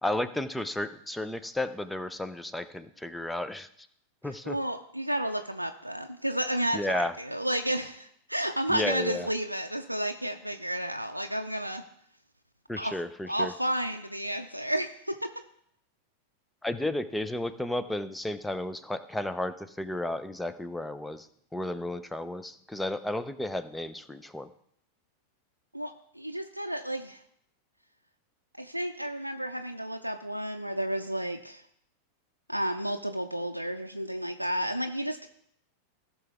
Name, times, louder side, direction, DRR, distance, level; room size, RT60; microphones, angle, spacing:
voice 1, 0.0-3.7 4.2-4.6 6.7-7.1 8.7-9.3 12.7-13.5 16.6-21.3 21.5-24.5, left 1 dB, 5° left, 12 dB, 0.6 m, -33 dB
voice 2, 4.5-11.8 12.8-12.9 13.3-15.3 25.7-27.2 28.5-31.6 32.5-35.3, right 1 dB, 90° right, 5 dB, 0.5 m, -32 dB
17.0 x 6.1 x 3.5 m, 0.71 s
figure-of-eight pair, 90°, 0 cm